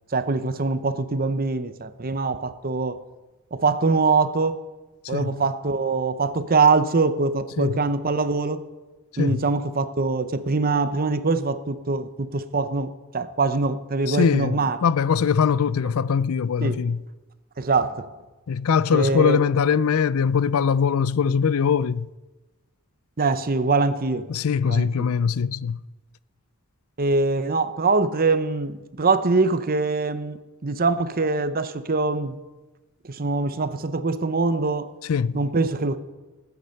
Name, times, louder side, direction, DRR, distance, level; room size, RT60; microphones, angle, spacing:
voice 1, 0.1-3.0 3.5-4.6 5.1-8.6 9.2-14.8 16.6-16.8 17.6-18.1 18.9-19.4 23.2-24.3 24.6-25.1 27.0-32.4 33.0-34.9 35.3-36.0, right 3 dB, 45° right, 0.8 m, -23 dB
voice 2, 14.1-17.0 18.5-22.1 24.3-25.8 35.1-35.4, left 6 dB, 80° left, 0.4 m, -22 dB
19.0 x 9.5 x 5.8 m
head